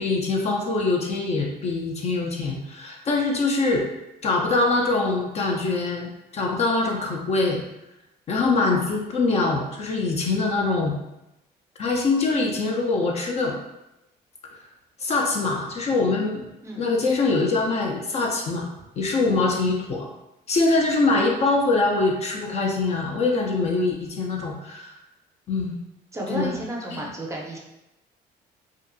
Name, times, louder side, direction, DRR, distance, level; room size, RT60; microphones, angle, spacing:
voice 1, 0.0-3.9 4.2-7.6 8.3-10.9 11.8-13.6 15.0-16.5 16.8-18.7 19.0-20.1 20.5-24.9 25.5-25.7 26.3-26.6 26.9-27.1, left 3 dB, 40° left, 0 dB, 0.4 m, -23 dB
voice 2, 19.0-19.3 26.1-27.6, right 1 dB, 15° right, -2 dB, 0.5 m, -33 dB
2.5 x 2.4 x 2.5 m, 0.92 s
cardioid pair, 110°, 17 cm